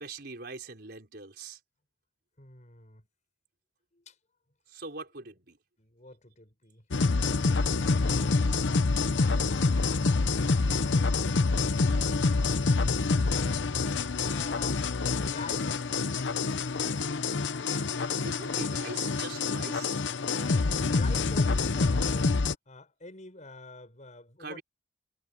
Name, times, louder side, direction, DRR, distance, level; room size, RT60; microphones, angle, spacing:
voice 1, 0.0-1.6 4.7-5.6 18.2-20.0 24.4-24.6, right 3 dB, 60° right, 5.0 m, -42 dB
voice 2, 2.4-3.1 3.9-4.2 5.8-8.0 14.2-16.0 20.2-22.4 22.6-24.6, left 2 dB, 40° left, 6.6 m, -47 dB
sound 1, 6.9-22.5, left 4 dB, 75° left, 0.8 m, -27 dB
head